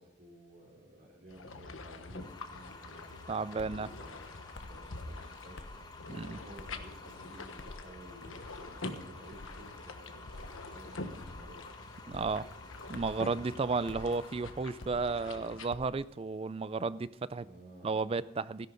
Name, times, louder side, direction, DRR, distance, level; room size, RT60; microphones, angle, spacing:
voice 1, 0.0-4.3 4.5-11.6 17.4-18.1, equal, 45° right, 3.2 m, -54 dB
sound 1, 1.3-15.7, left 2 dB, 80° left, 1.2 m, -46 dB
sound 2, 2.2-17.1, left 3 dB, 20° left, 1.5 m, -53 dB
voice 2, 3.3-3.9 6.1-6.4 12.1-12.5 12.9-17.5 17.8-18.7, right 4 dB, 30° right, 0.4 m, -33 dB
sound 3, 3.6-3.8 4.5-4.8 5.5-5.8 6.6-6.9 7.6-7.8 8.4-8.7 9.3-9.6 10.2-10.5 11.2-11.5 12.1-12.4 12.9-13.2 13.9-14.1 14.8-15.1 15.7-16.0, left 2 dB, 60° left, 0.8 m, -48 dB
17.0 x 11.0 x 3.9 m
head